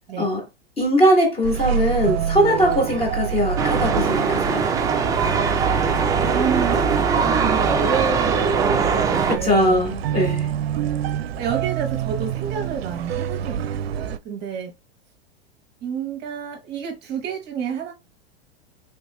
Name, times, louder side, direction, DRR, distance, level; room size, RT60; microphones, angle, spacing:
voice 1, 0.8-4.7 9.3-10.5, equal, 20° left, 1.4 m, -20 dB
sound 1, 1.4-14.2, right 8 dB, 75° right, 0.5 m, -26 dB
sound 2, 3.6-9.3, right 5 dB, 10° right, 0.3 m, -21 dB
voice 2, 6.3-8.5 8.9-9.9 11.4-14.7 15.8-17.9, right 7 dB, 35° right, 0.9 m, -29 dB
3.2 x 3.2 x 2.2 m
hypercardioid pair, 105°, 31 cm